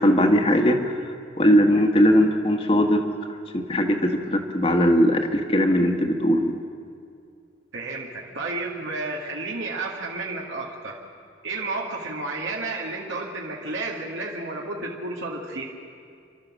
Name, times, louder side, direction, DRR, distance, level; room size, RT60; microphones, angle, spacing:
voice 1, 0.0-3.0 3.5-6.6, equal, 30° left, 4 dB, 1.6 m, -20 dB
voice 2, 7.7-11.0 11.4-15.7, right 2 dB, 80° right, -2 dB, 2.2 m, -31 dB
30.0 x 12.5 x 7.5 m, 2.3 s
head